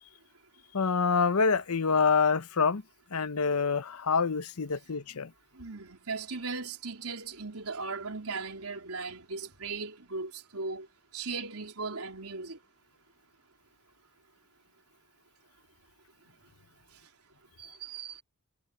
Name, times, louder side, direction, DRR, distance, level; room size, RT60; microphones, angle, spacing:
voice 1, 0.7-2.8 3.1-5.3, left 5 dB, 80° left, 0.8 m, -26 dB
voice 2, 5.5-10.9 11.1-12.6 17.6-18.2, right 4 dB, 85° right, 3.9 m, -38 dB
head